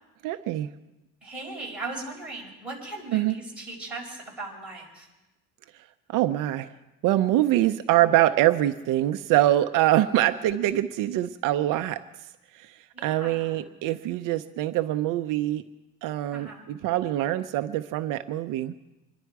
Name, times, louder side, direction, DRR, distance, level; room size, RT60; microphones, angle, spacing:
voice 1, 0.2-0.7 3.1-3.4 6.1-6.7 7.0-12.0 12.5-15.6 16.0-18.7, right 14 dB, 70° right, 9 dB, 0.6 m, -24 dB
voice 2, 1.2-5.1 12.9-13.6 16.3-16.7, right 3 dB, 5° right, -4 dB, 4.8 m, -38 dB
25.5 x 11.0 x 4.7 m, 1.0 s
cardioid pair, 160°, 34 cm